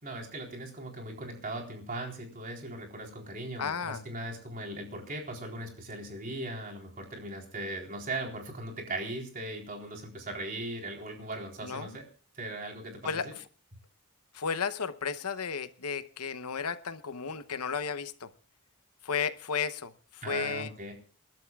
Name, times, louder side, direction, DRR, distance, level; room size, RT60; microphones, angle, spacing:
voice 1, 0.0-12.0 12.4-13.4 20.2-20.9, right 2 dB, 40° right, 1 dB, 4.0 m, -39 dB
voice 2, 3.6-4.0 11.6-11.9 13.0-13.4 14.3-18.3 19.0-20.7, left 6 dB, 85° left, 12 dB, 0.9 m, -34 dB
29.0 x 12.0 x 2.4 m, 0.36 s
head